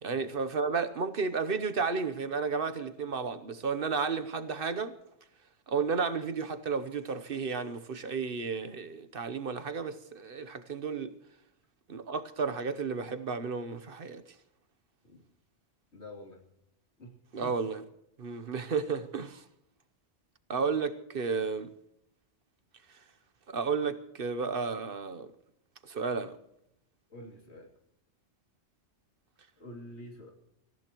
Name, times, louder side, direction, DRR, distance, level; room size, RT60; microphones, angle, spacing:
voice 1, 0.0-4.9 5.7-11.2 11.9-14.2 17.3-17.8 18.2-19.4 20.5-21.7 22.9-23.0 23.5-25.3 25.8-26.4, right 5 dB, 55° right, 1.0 m, -32 dB
voice 2, 15.9-16.4 17.0-17.1 17.4-17.5 27.1-27.7 29.6-30.3, left 1 dB, 75° left, 3.3 m, -47 dB
26.0 x 15.0 x 3.0 m
omnidirectional pair, 1.2 m